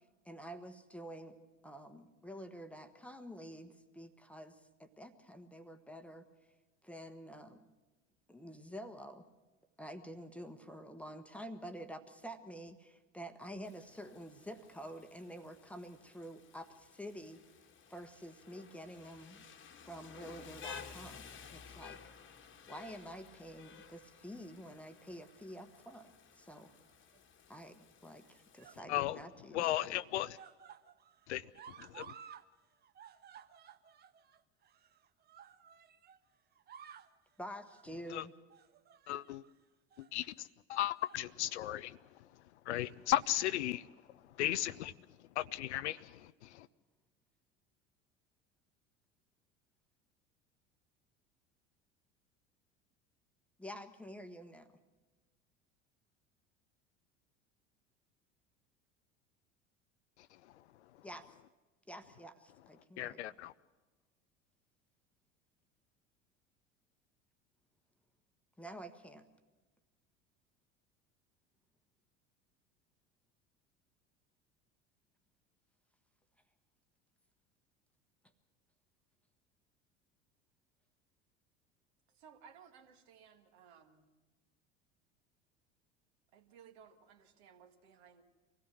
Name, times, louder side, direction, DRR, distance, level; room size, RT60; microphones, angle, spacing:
voice 1, 0.2-1.4 1.6-6.2 6.8-7.6 8.3-9.3 9.8-17.4 17.9-19.4 19.8-22.0 22.7-26.7 27.5-29.7 37.4-38.3 53.6-54.7 61.0-61.3 61.9-63.2 68.6-69.3, equal, 5° left, 1.1 m, -48 dB
Rain, 13.6-28.8, left 6 dB, 30° left, 1.5 m, -55 dB
sound 1, 26.6-27.2 28.1-29.4 29.7-32.5 32.7-36.2 36.5-37.2 37.6-37.9 38.5-39.5 39.9-40.1 40.8-41.3 41.6-41.8 42.9-43.6 44.5-44.6, right 8 dB, 25° right, 0.7 m, -56 dB
voice 2, 28.9-29.2 29.5-30.4 31.3-31.5 31.8-32.1 38.1-38.2 39.1-39.4 40.0-42.0 42.7-43.9 44.4-44.9 45.4-46.7 63.0-63.5, left 14 dB, 60° left, 0.6 m, -35 dB
voice 3, 82.2-84.1 86.3-88.2, right 7 dB, 55° right, 1.8 m, -59 dB
24.5 x 17.0 x 6.1 m
figure-of-eight pair, 70°, 38 cm